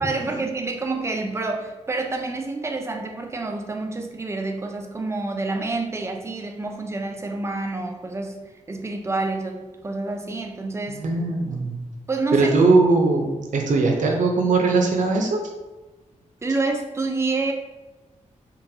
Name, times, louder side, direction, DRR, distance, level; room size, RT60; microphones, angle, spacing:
voice 1, 0.0-11.1 12.1-12.5 16.4-17.5, right 3 dB, 20° right, 3 dB, 0.4 m, -28 dB
voice 2, 10.9-11.8 12.3-13.3 13.5-15.4, right 3 dB, 80° right, 2 dB, 0.6 m, -20 dB
3.8 x 2.3 x 2.7 m, 1.1 s
wide cardioid pair, 110°, 13 cm